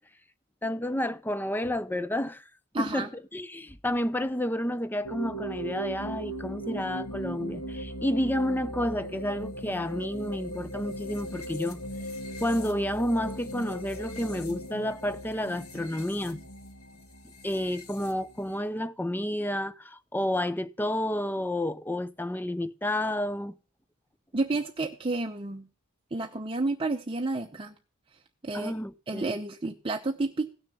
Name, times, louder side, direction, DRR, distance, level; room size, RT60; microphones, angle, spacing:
voice 1, 0.6-2.4 2.8-11.8 12.4-16.4 17.4-23.6 28.5-29.4, left 1 dB, 10° left, 0.6 m, -30 dB
voice 2, 2.7-3.1 24.3-25.6 26.1-27.7 28.4-28.7 29.1-30.5, right 2 dB, 25° right, 0.8 m, -30 dB
sound 1, 5.0-18.6, right 1 dB, 85° left, 2.2 m, -39 dB
16.5 x 6.6 x 5.4 m
head